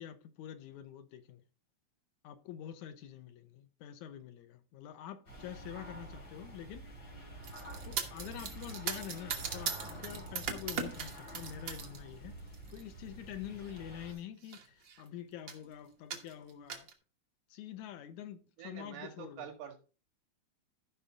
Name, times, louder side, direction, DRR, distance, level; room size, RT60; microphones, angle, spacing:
voice 1, 0.0-1.4 2.2-6.8 7.8-12.4 12.7-16.9 17.5-19.5, left 10 dB, 75° left, 2.1 m, -46 dB
sound 1, 5.3-14.1, right 1 dB, 35° left, 3.3 m, -48 dB
sound 2, 7.4-12.0 12.4-12.8 13.7-13.8 14.1-14.2 14.4-15.0 15.5-15.7 16.1-16.9, right 6 dB, 50° right, 1.6 m, -39 dB
voice 2, 18.6-19.8, right 8 dB, 80° right, 3.2 m, -46 dB
13.5 x 5.6 x 3.8 m
omnidirectional pair, 3.4 m